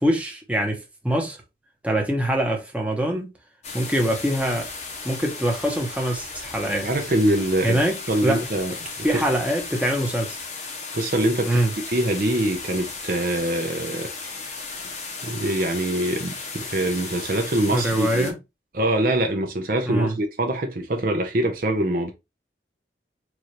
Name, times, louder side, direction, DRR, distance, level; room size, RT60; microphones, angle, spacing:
voice 1, 0.0-1.4 1.8-3.3 3.7-4.7 5.0-6.9 7.6-8.5 9.0-10.4 11.5-11.7 17.7-18.4 19.9-20.2, right 1 dB, 10° right, 0.8 m, -24 dB
sound 1, 3.6-18.3, left 4 dB, 40° left, 0.8 m, -35 dB
voice 2, 6.7-7.8 8.1-9.2 10.9-14.1 14.5-14.6 15.2-18.3 18.7-22.1, right 1 dB, 50° right, 0.6 m, -24 dB
4.7 x 2.5 x 2.9 m
head